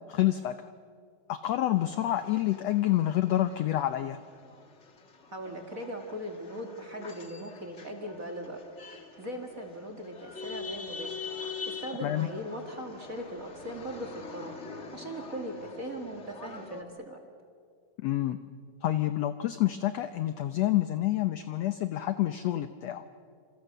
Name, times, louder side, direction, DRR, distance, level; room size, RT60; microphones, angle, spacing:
voice 1, 0.1-0.6 1.3-4.2 12.0-12.3 18.0-18.4 18.8-23.0, left 14 dB, 80° left, 10 dB, 1.5 m, -28 dB
sound 1, 1.7-16.8, left 5 dB, 50° left, 0.8 m, -44 dB
voice 2, 5.3-8.6 8.9-11.2 11.8-14.6 14.9-17.2, equal, 30° right, 3 dB, 2.0 m, -39 dB
28.5 x 27.5 x 6.7 m, 2.2 s
omnidirectional pair, 3.9 m